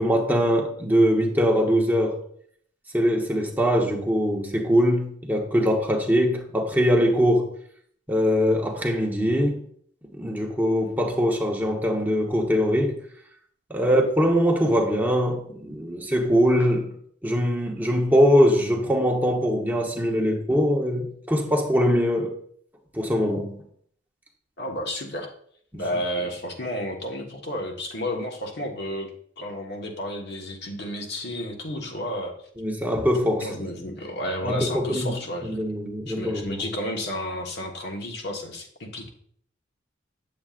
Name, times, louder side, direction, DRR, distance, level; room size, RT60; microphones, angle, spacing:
voice 1, 0.0-2.2 2.9-7.5 8.1-9.6 10.1-12.9 13.7-16.9 17.2-22.3 22.9-23.6 25.7-25.8 32.6-33.5 34.4-35.1 35.4-36.7, equal, 10° right, 0 dB, 1.0 m, -22 dB
voice 2, 24.6-25.3 25.7-29.1 29.4-32.3 33.4-35.6 36.1-39.1, left 1 dB, 60° left, 1 dB, 1.4 m, -32 dB
8.7 x 7.5 x 2.5 m, 0.63 s
head